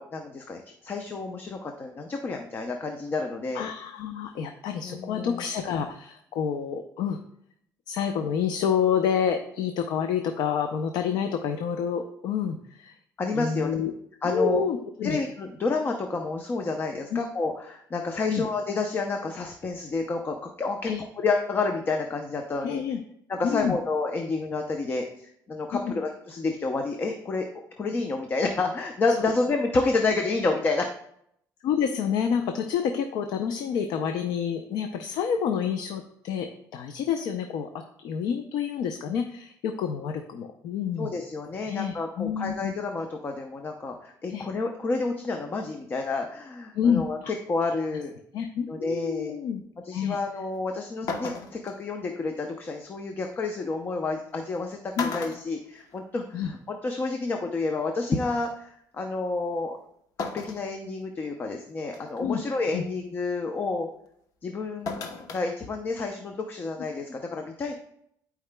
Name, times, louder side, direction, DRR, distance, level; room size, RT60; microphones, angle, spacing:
voice 1, 0.0-3.6 4.8-5.4 13.2-13.7 14.2-14.6 15.0-20.9 21.2-22.8 23.3-27.5 27.8-30.9 41.0-47.2 47.5-48.1 48.7-49.3 49.8-59.8 60.2-63.9 64.4-65.0 65.3-67.7, left 3 dB, 30° left, 4 dB, 0.6 m, -29 dB
voice 2, 3.5-7.2 7.9-13.0 13.3-13.9 14.2-15.2 17.1-17.2 18.3-18.4 20.9-21.0 22.6-23.0 23.4-23.8 25.9-26.0 29.2-29.3 31.6-41.2 41.6-42.7 44.3-44.5 46.7-47.3 48.3-49.6 49.9-50.2 55.0-55.1 56.3-56.5 62.2-62.4 62.7-62.8, left 7 dB, 90° left, 6 dB, 0.5 m, -28 dB
sound 1, 50.5-50.6 51.1-51.7 53.3-53.4 54.4-54.6 54.9-56.3 56.7-56.8 58.0-58.1 60.2-60.7 61.2-61.3 61.9-62.2 64.9-65.5 65.8-65.9, left 4 dB, 60° left, 0.9 m, -34 dB
12.0 x 4.8 x 2.2 m, 0.72 s
cardioid pair, 145°, 7 cm